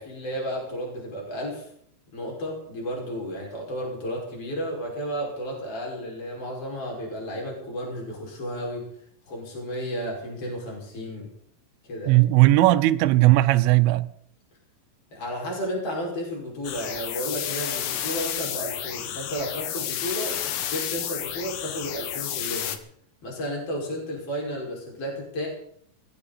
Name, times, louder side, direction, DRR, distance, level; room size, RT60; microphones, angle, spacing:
voice 1, 0.0-1.7 2.1-8.8 9.3-11.3 11.9-12.2 15.1-22.8 23.2-25.5, equal, 30° left, 6.2 m, -33 dB
voice 2, 12.1-14.1, right 17 dB, 80° right, 3.1 m, -17 dB
sound 1, 16.6-22.8, left 10 dB, 85° left, 1.9 m, -31 dB
21.0 x 15.5 x 4.2 m
omnidirectional pair, 5.8 m